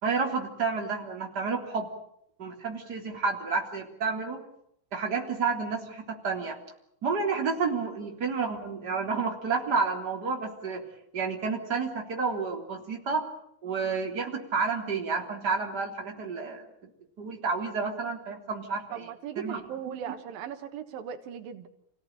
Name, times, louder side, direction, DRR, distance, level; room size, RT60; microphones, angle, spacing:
voice 1, 0.0-1.9 2.4-4.4 4.9-6.6 7.0-10.8 11.1-13.3 13.6-16.7 17.2-18.8 19.4-19.6, right 4 dB, 30° right, 1 dB, 3.8 m, -30 dB
voice 2, 18.9-21.7, right 8 dB, 90° right, 8 dB, 3.2 m, -38 dB
28.5 x 17.0 x 9.1 m, 0.75 s
omnidirectional pair, 3.9 m